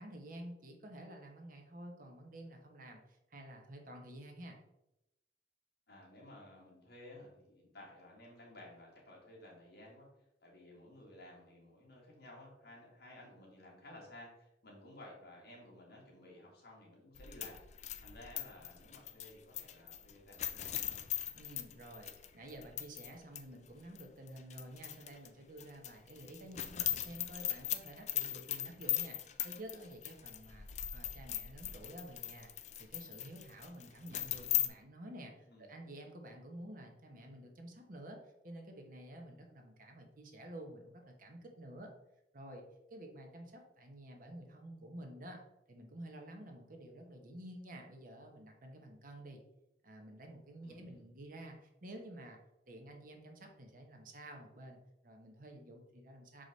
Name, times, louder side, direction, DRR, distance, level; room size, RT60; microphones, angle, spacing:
voice 1, 0.0-4.6 21.3-41.9 42.3-42.6 42.9-45.4 45.7-49.4 49.8-52.4 52.7-56.4, right 1 dB, 50° right, 3 dB, 1.1 m, -51 dB
voice 2, 5.9-10.1 10.4-17.6 18.0-21.0 35.5-35.7 50.6-51.1, left 1 dB, 60° left, -3 dB, 2.3 m, -55 dB
sound 1, 17.2-23.1 23.4-23.5 24.0-25.3 25.6-34.7, left 12 dB, 40° left, 0.4 m, -39 dB
5.9 x 5.0 x 4.0 m, 0.88 s
head